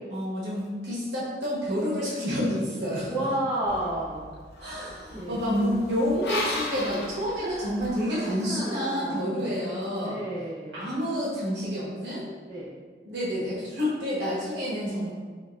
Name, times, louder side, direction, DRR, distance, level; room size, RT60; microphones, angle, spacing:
voice 1, 0.1-3.2 4.6-10.2 10.7-12.3 13.0-15.1, equal, 85° right, -7 dB, 1.0 m, -29 dB
voice 2, 3.1-4.3 5.1-5.4 7.4-9.4 10.0-10.9 12.5-12.7, right 1 dB, 20° right, -14 dB, 0.9 m, -32 dB
sound 1, 3.7-8.0, left 2 dB, 75° left, 0.6 m, -36 dB
5.7 x 2.5 x 2.2 m, 1.5 s
head